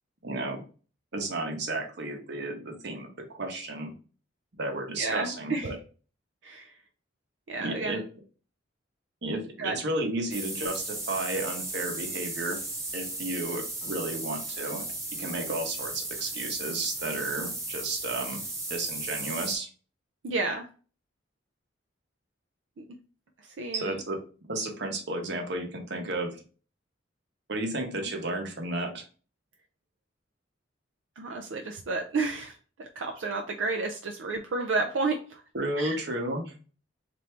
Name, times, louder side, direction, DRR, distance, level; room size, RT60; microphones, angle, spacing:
voice 1, 0.2-0.6 1.1-3.9 4.5-5.8 7.6-8.0 9.2-12.6 12.9-14.9 15.2-18.4 18.7-19.7 23.7-24.2 24.5-26.4 27.5-29.0 35.5-36.5, right 2 dB, 65° right, 3 dB, 0.9 m, -33 dB
voice 2, 4.9-5.7 6.4-6.7 7.5-8.0 9.6-9.8 20.2-20.7 22.8-22.9 23.6-24.0 31.2-32.5 32.8-35.4 35.8-36.0, right 3 dB, 90° right, 4 dB, 0.4 m, -31 dB
sound 1, 10.3-19.6, right 2 dB, 15° right, 0.9 m, -36 dB
3.3 x 2.6 x 4.3 m, 0.38 s
head